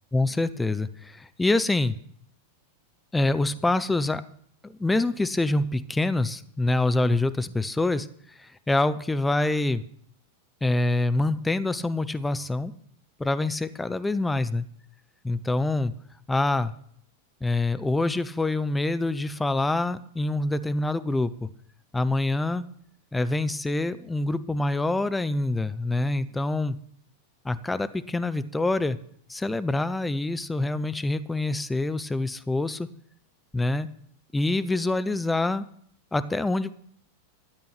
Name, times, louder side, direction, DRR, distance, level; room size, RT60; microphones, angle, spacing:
voice 1, 0.1-2.0 3.1-4.2 4.6-8.1 8.4-9.8 10.6-12.7 13.2-14.7 15.2-15.9 16.3-16.7 17.4-21.5 21.9-22.6 23.1-26.8 27.4-29.0 29.3-32.9 33.5-33.9 34.3-35.6 36.1-36.7, left 2 dB, 10° left, 12 dB, 0.7 m, -26 dB
13.0 x 8.7 x 6.1 m, 0.64 s
figure-of-eight pair, 90°, 0 cm